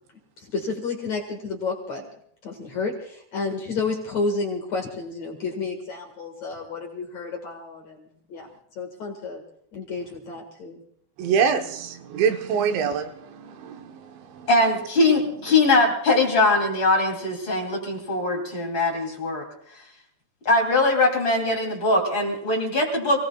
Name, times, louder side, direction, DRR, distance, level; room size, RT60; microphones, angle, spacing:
voice 1, 0.4-2.1 2.4-8.5 8.8-9.4 9.7-10.8, left 4 dB, 50° left, 1 dB, 2.4 m, -31 dB
voice 2, 11.2-14.5 15.4-15.6, right 6 dB, 90° right, 5 dB, 3.4 m, -25 dB
voice 3, 14.5-19.4 20.4-23.2, left 2 dB, 30° left, 0 dB, 3.2 m, -21 dB
29.0 x 18.0 x 2.3 m, 0.70 s
omnidirectional pair, 5.0 m